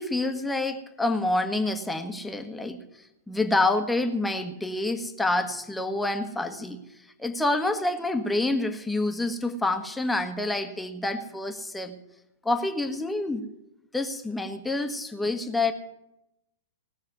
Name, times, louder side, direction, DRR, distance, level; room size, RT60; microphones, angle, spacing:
voice 1, 0.0-6.8 7.2-12.0 12.4-13.5 13.9-15.7, left 2 dB, 5° left, 6 dB, 1.4 m, -27 dB
18.5 x 6.5 x 9.3 m, 0.86 s
figure-of-eight pair, 105°, 0 cm